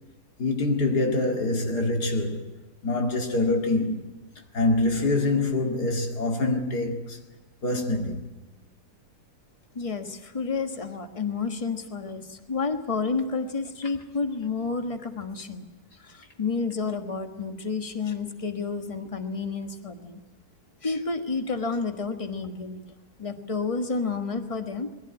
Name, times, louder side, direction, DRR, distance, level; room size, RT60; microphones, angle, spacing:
voice 1, 0.4-2.5 2.8-4.1 4.5-7.1 7.6-8.2, left 2 dB, 75° left, 2.8 m, -25 dB
voice 2, 9.7-12.2 12.5-15.6 16.1-20.2 20.8-22.8 23.2-24.9, left 4 dB, 20° left, 1.4 m, -30 dB
21.0 x 16.0 x 9.6 m
omnidirectional pair, 1.7 m